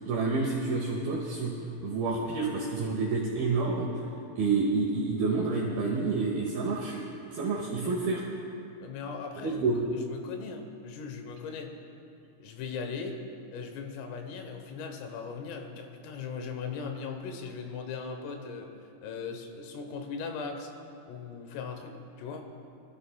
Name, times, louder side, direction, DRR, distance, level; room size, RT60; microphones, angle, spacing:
voice 1, 0.0-1.5 1.8-3.9 4.4-7.0 7.3-8.2 9.4-9.8, right 3 dB, 80° right, -2 dB, 2.2 m, -28 dB
voice 2, 7.6-8.0 8.8-11.8 12.4-13.2 13.5-18.7 19.0-20.7 21.1-22.5, left 5 dB, 90° left, 4 dB, 3.7 m, -39 dB
23.0 x 13.0 x 2.3 m, 2.6 s
omnidirectional pair, 5.8 m